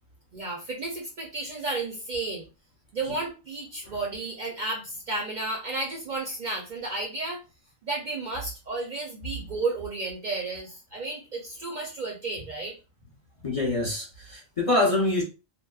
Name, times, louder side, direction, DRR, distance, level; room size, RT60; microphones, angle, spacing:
voice 1, 0.3-2.5 2.9-7.4 7.8-12.8, right 3 dB, 55° right, 0.5 m, -32 dB
voice 2, 13.4-15.2, left 2 dB, 40° left, 0.6 m, -25 dB
2.9 x 2.0 x 2.2 m
omnidirectional pair, 1.1 m